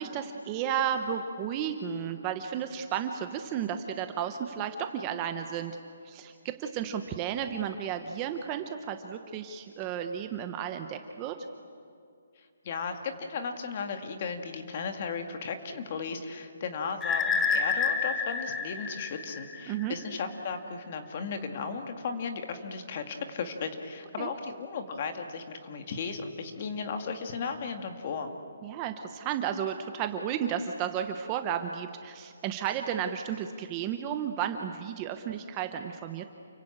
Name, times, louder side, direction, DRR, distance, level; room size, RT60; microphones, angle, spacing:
voice 1, 0.0-5.8 6.0-11.4 19.7-19.9 24.2-24.3 28.6-36.3, right 9 dB, 15° right, 7 dB, 0.8 m, -33 dB
voice 2, 12.6-28.3, left 5 dB, 30° left, 6 dB, 2.0 m, -35 dB
sound 1, 17.0-19.9, left 5 dB, 5° left, 0.9 m, -29 dB
29.5 x 22.5 x 8.8 m, 2.4 s
hypercardioid pair, 175°, 0 cm